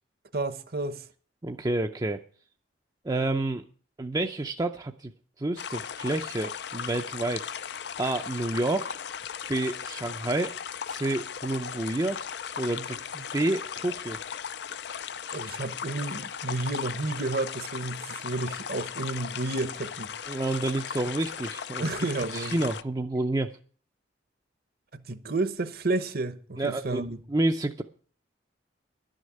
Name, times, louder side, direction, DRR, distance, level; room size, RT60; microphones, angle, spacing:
voice 1, 0.3-1.0 15.3-20.1 21.8-22.6 24.9-27.2, right 2 dB, 55° right, 0.9 m, -31 dB
voice 2, 1.4-2.2 3.0-3.7 4.0-5.1 5.4-7.5 8.0-9.0 9.5-10.5 10.9-12.2 12.6-14.2 20.3-21.9 22.3-23.5 26.6-27.0 27.3-27.8, right 2 dB, 20° right, 0.5 m, -29 dB
sound 1, 5.6-22.8, left 8 dB, 60° left, 0.5 m, -37 dB
11.5 x 6.5 x 8.5 m
head